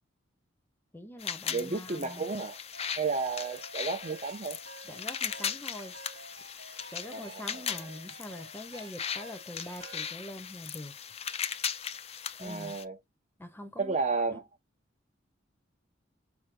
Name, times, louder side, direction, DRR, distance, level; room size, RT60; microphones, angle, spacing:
voice 1, 0.9-2.3 4.8-5.9 6.9-11.0 12.4-12.8 13.4-14.0 14.3-14.4, left 1 dB, 10° left, 0.8 m, -44 dB
sound 1, 1.2-12.8, left 8 dB, 35° left, 0.5 m, -38 dB
voice 2, 1.5-2.6 3.0-4.6 7.1-7.9 12.4-13.0 13.8-14.4, right 4 dB, 40° right, 0.8 m, -32 dB
sound 2, 1.9-10.2, right 3 dB, 70° right, 3.3 m, -50 dB
6.0 x 2.1 x 3.3 m
head